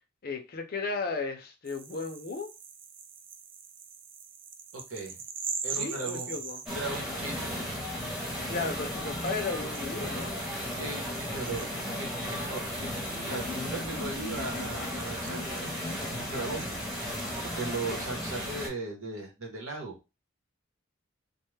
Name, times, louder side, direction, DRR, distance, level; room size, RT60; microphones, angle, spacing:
voice 1, 0.2-2.5 5.7-6.6 8.5-10.3, left 4 dB, 45° left, 0.5 m, -34 dB
sound 1, 1.7-17.9, right 6 dB, 40° right, 0.3 m, -44 dB
voice 2, 4.7-5.1 5.6-6.4 6.7-7.5 10.6-16.7 17.5-20.0, right 3 dB, 85° right, 1.1 m, -38 dB
sound 2, 6.7-18.7, left 1 dB, ahead, 0.7 m, -35 dB
2.4 x 2.2 x 3.2 m
head